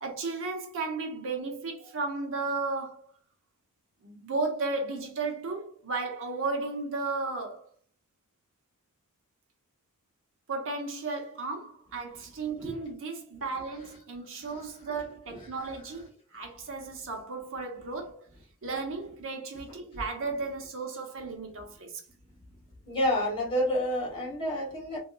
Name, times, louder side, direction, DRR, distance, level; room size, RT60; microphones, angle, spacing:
voice 1, 0.0-3.1 4.0-7.7 10.5-18.2 18.6-22.0, right 3 dB, 60° right, 0.9 m, -34 dB
voice 2, 22.8-25.0, equal, 25° left, 1.6 m, -29 dB
3.5 x 3.4 x 2.3 m
head